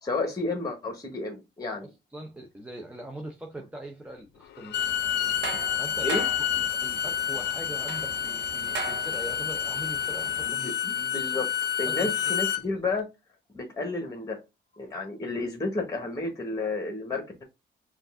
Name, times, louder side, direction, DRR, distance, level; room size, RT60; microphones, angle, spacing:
voice 1, 0.0-1.9 6.0-6.2 10.5-11.5 11.8-13.0 13.5-14.4 14.8-17.4, left 3 dB, 20° left, 1.3 m, -31 dB
voice 2, 1.6-5.0 5.8-10.8 11.9-12.4, right 1 dB, 5° right, 0.6 m, -42 dB
Bowed string instrument, 4.6-12.6, left 9 dB, 60° left, 0.5 m, -29 dB
sound 1, 4.7-10.5, right 5 dB, 65° right, 0.8 m, -40 dB
5.1 x 2.5 x 3.5 m
cardioid pair, 90°, 20 cm